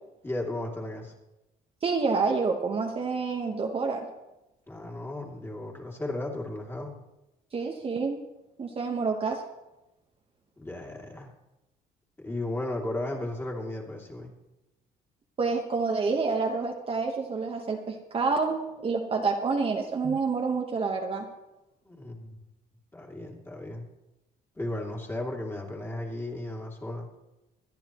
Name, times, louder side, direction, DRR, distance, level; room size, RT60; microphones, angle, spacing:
voice 1, 0.2-1.1 4.7-7.0 10.6-11.3 12.2-14.3 21.8-22.3 22.9-23.9 24.6-27.1, left 1 dB, 15° left, -1 dB, 2.7 m, -35 dB
voice 2, 1.8-4.1 7.5-8.2 8.6-9.4 15.4-21.3, right 4 dB, 35° right, 2 dB, 1.2 m, -28 dB
25.0 x 10.0 x 3.1 m, 0.97 s
cardioid pair, 110°, 17 cm